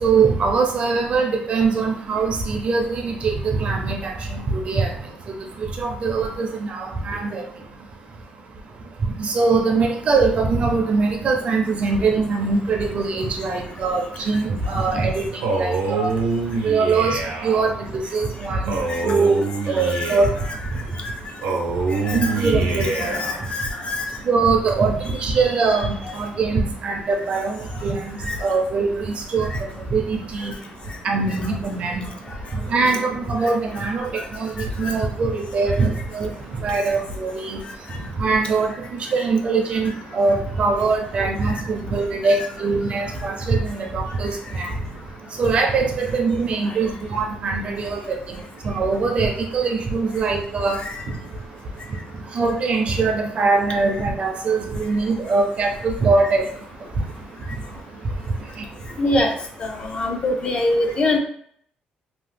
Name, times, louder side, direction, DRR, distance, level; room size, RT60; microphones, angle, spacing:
voice 1, 0.0-4.9 5.8-7.4 9.2-16.1 16.6-18.7 19.0-20.3 22.1-23.1 24.3-29.0 29.3-29.5 29.9-30.5 31.0-32.0 32.7-36.3 36.6-37.6 38.2-44.3 44.6-44.7 45.4-48.2 48.6-50.8 52.3-56.4, right 4 dB, 40° right, 2 dB, 0.5 m, -22 dB
Male speech man speaking, 15.4-17.6 18.7-20.5 21.4-23.4, right 4 dB, 90° right, 0.6 m, -25 dB
voice 2, 23.1-24.0 28.3-28.4 34.8-34.9 59.0-59.3 59.6-61.2, left 2 dB, 35° left, 3 dB, 0.4 m, -23 dB
2.9 x 2.0 x 3.3 m, 0.63 s
cardioid pair, 160°, 3 cm